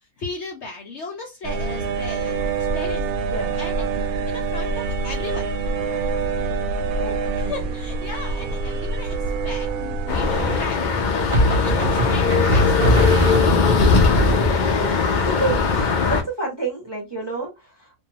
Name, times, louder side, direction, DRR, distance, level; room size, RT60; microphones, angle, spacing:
voice 1, 0.2-3.1 3.6-3.8 4.3-5.5 7.4-9.2 9.4-10.8 11.4-14.0, left 3 dB, 60° left, 0.8 m, -35 dB
sound 1, 1.4-10.6, right 4 dB, 80° right, 1.1 m, -26 dB
voice 2, 3.3-4.1 7.0-7.1 7.4-7.6 11.7-12.1 15.1-17.9, right 3 dB, 20° right, 0.8 m, -30 dB
sound 2, 8.7-9.2 11.3-14.0, right 1 dB, 50° right, 0.6 m, -23 dB
sound 3, 10.1-16.2, left 4 dB, 85° left, 0.4 m, -19 dB
2.6 x 2.3 x 2.8 m
omnidirectional pair, 1.6 m